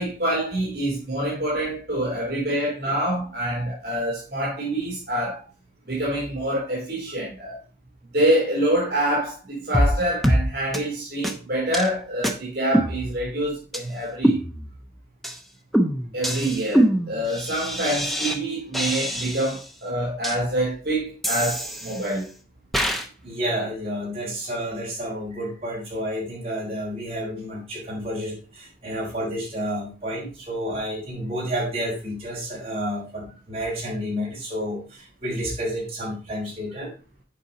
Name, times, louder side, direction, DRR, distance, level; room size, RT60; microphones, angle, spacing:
voice 1, 0.0-5.4 5.9-7.5 8.1-14.4 16.1-22.3, right 1 dB, 60° right, 3.0 m, -26 dB
sound 1, 9.7-10.0 10.2-10.4 10.7-10.8 11.2-11.3 11.7-11.9 12.2-12.3 12.7-13.4 13.7-13.8 14.2-14.9 15.2-15.4 15.7-18.4 18.7-19.6 20.2-20.3 21.2-22.2 22.7-23.1, equal, ahead, 0.7 m, -24 dB
voice 2, 23.2-36.9, equal, 35° right, 4.4 m, -30 dB
8.4 x 5.3 x 4.1 m
head